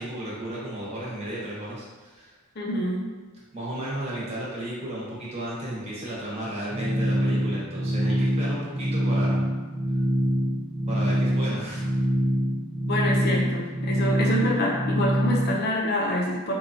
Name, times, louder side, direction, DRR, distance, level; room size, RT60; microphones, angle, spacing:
voice 1, 0.0-2.3 3.5-9.4 10.9-11.8, right 1 dB, 30° right, -6 dB, 0.9 m, -34 dB
voice 2, 2.6-3.0 12.9-16.5, left 1 dB, 50° left, -2 dB, 0.5 m, -26 dB
sound 1, 6.7-15.5, equal, 55° right, 0.8 m, -25 dB
4.1 x 2.3 x 2.6 m, 1.3 s
head